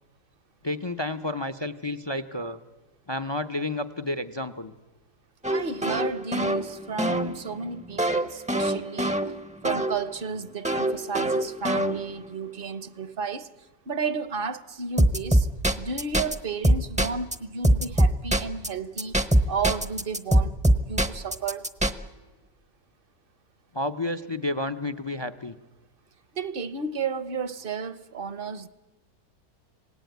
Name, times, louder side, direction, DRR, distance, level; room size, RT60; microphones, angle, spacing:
voice 1, 0.6-2.6 3.1-4.7 23.7-25.5, left 2 dB, 40° left, 0.4 m, -30 dB
sound 1, 5.4-10.0 10.6-12.3 15.0-16.3 16.6-17.3 17.6-18.7 19.0-21.9, right 1 dB, 5° right, 0.6 m, -23 dB
voice 2, 5.5-9.2 9.6-13.5 13.9-15.5 15.8-19.2 19.4-21.7 26.3-28.7, right 5 dB, 45° right, 0.9 m, -32 dB
26.5 x 18.5 x 9.3 m
omnidirectional pair, 1.8 m